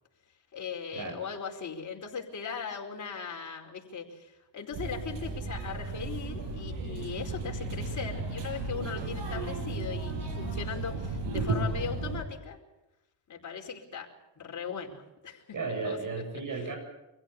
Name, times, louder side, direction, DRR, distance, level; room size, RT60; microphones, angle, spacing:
voice 1, 0.5-12.6 13.3-14.1 14.4-15.4 15.7-16.0, left 6 dB, 40° left, 0 dB, 4.8 m, -39 dB
sound 1, 4.7-12.2, right 3 dB, 75° right, 6.8 m, -34 dB
voice 2, 15.5-16.8, right 4 dB, 45° right, 5 dB, 7.3 m, -34 dB
25.0 x 16.0 x 8.5 m, 0.96 s
cardioid pair, 105°, 44 cm